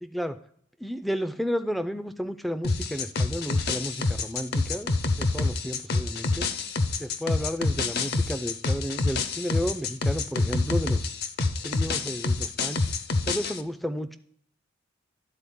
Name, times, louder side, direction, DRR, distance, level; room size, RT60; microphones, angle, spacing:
voice 1, 0.0-0.4 0.8-6.5 7.0-11.1 11.6-12.8 13.3-14.2, equal, ahead, 11 dB, 0.3 m, -32 dB
sound 1, 2.6-13.6, left 3 dB, 50° left, 0.6 m, -27 dB
11.5 x 4.2 x 3.5 m, 0.67 s
head